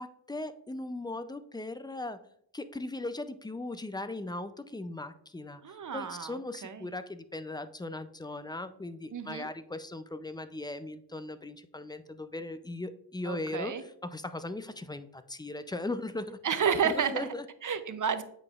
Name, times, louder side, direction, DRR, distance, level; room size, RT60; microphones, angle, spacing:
voice 1, 0.0-2.2 2.5-16.4 16.8-17.5, left 2 dB, 10° left, 12 dB, 0.4 m, -38 dB
voice 2, 5.6-6.9 9.1-9.5 13.2-13.8 16.4-17.3 17.6-18.2, right 7 dB, 40° right, 11 dB, 0.7 m, -31 dB
8.0 x 4.8 x 2.4 m, 0.69 s
cardioid pair, 50°, 46 cm